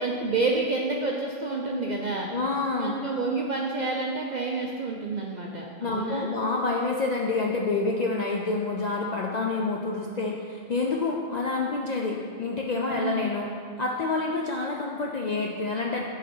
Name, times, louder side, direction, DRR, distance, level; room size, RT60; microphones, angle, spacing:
voice 1, 0.0-2.3 2.8-6.3 12.8-13.2, right 3 dB, 65° right, -1 dB, 0.4 m, -29 dB
voice 2, 2.3-3.0 5.8-16.1, left 3 dB, 85° left, -1 dB, 0.3 m, -28 dB
8.2 x 4.1 x 4.3 m, 2.1 s
omnidirectional pair, 1.4 m